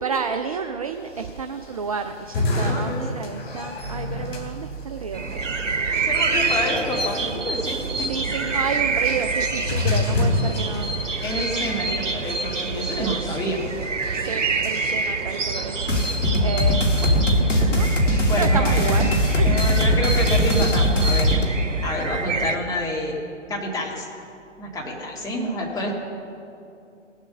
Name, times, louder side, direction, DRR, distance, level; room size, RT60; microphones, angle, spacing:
voice 1, 0.0-5.5 8.0-10.9 11.8-12.0 12.9-13.4 14.1-16.1 16.4-17.9 18.3-19.1 19.4-20.0 20.6-20.7, right 6 dB, 30° right, 7 dB, 0.4 m, -30 dB
sound 1, 1.1-15.4, left 2 dB, 50° left, 3.0 m, -30 dB
voice 2, 2.6-3.0 6.0-8.1 11.2-13.6 17.7-17.9 18.3-19.0 19.4-21.6 21.8-23.1 23.5-24.1 24.6-25.9, left 1 dB, 10° left, -3 dB, 1.9 m, -28 dB
sound 2, 5.1-22.6, right 4 dB, 80° right, 1.0 m, -27 dB
sound 3, 15.9-21.4, equal, 75° left, 2.1 m, -20 dB
18.0 x 7.4 x 6.7 m, 2.7 s
figure-of-eight pair, 130°, 37 cm